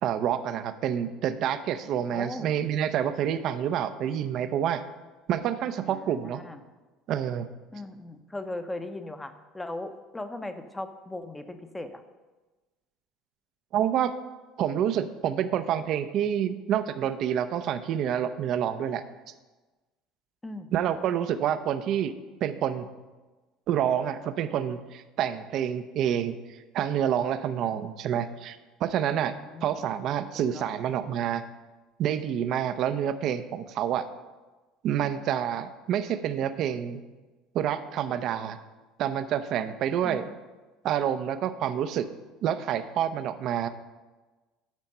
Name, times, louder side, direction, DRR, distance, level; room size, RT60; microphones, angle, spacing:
voice 1, 0.0-4.8 5.3-6.4 7.1-7.5 13.7-14.1 14.6-19.0 20.7-22.1 22.4-22.9 23.7-26.4 26.7-29.3 29.6-31.4 32.0-34.0 34.8-37.0 37.5-38.6 39.0-40.3 40.8-42.1 42.4-43.7, right 9 dB, 55° right, 11 dB, 0.6 m, -28 dB
voice 2, 2.1-2.5 5.8-6.6 7.7-12.0 20.4-20.7 29.1-29.6 30.5-30.7 40.0-40.3, left 2 dB, 15° left, 9 dB, 0.9 m, -38 dB
10.5 x 4.4 x 5.5 m, 1.2 s
hypercardioid pair, 75°, 0 cm